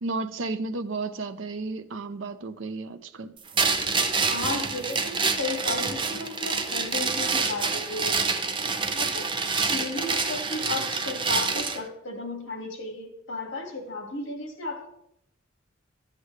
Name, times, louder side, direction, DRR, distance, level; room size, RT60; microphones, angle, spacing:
voice 1, 0.0-3.4, right 3 dB, 75° right, 10 dB, 0.6 m, -33 dB
sound 1, 3.6-11.8, right 4 dB, 25° right, 0.6 m, -27 dB
voice 2, 4.3-8.2 8.9-9.3 9.7-14.9, left 3 dB, 65° left, 3 dB, 2.1 m, -34 dB
13.0 x 8.2 x 3.2 m, 0.76 s
head